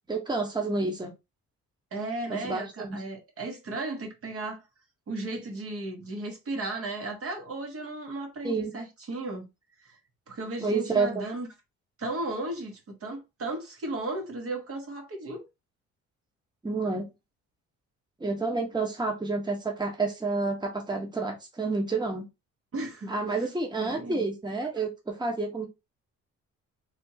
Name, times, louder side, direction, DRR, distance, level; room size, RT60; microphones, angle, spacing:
voice 1, 0.1-1.1 2.3-3.0 8.4-8.7 10.6-11.2 16.6-17.1 18.2-22.3 23.1-25.7, right 3 dB, 15° right, 1.0 m, -29 dB
voice 2, 1.9-4.6 5.1-9.5 9.8-10.0 10.3-11.5 12.0-15.4 22.7-23.1 23.7-24.2, right 2 dB, 50° right, 1.2 m, -35 dB
3.4 x 2.9 x 2.8 m
cardioid pair, 90°, 30 cm